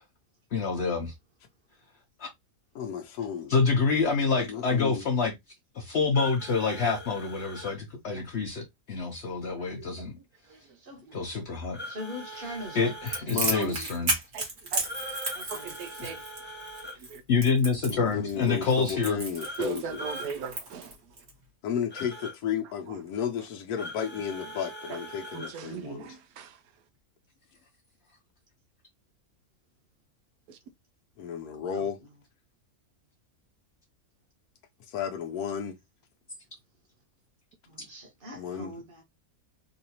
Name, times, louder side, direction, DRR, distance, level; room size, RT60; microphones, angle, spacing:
voice 1, 0.5-1.1 2.2-2.3 3.5-5.3 5.7-10.2 11.1-11.8 12.4-14.1 16.0-16.2 17.3-19.2, left 4 dB, 55° left, 0.9 m, -27 dB
voice 2, 2.7-3.5 4.5-5.0 13.3-13.8 17.9-20.1 21.6-26.2 31.2-32.0 34.9-35.8 38.3-38.7, left 8 dB, 85° left, 1.1 m, -33 dB
sound 1, 6.1-7.7 11.7-13.2 14.8-17.0 19.4-20.3 21.9-22.3 23.8-25.5, equal, 10° left, 0.5 m, -41 dB
voice 3, 11.9-12.9 13.4-13.9 15.4-15.7 31.7-31.9 37.7-39.0, equal, 35° right, 1.5 m, -41 dB
Crackle, 13.1-21.3, right 2 dB, 60° right, 1.9 m, -33 dB
voice 4, 14.3-14.8 15.5-16.2 17.1-17.2 19.6-21.0 24.9-25.0 25.3-26.6 30.5-30.6, right 6 dB, 85° right, 1.1 m, -38 dB
3.9 x 2.6 x 2.8 m
omnidirectional pair, 1.5 m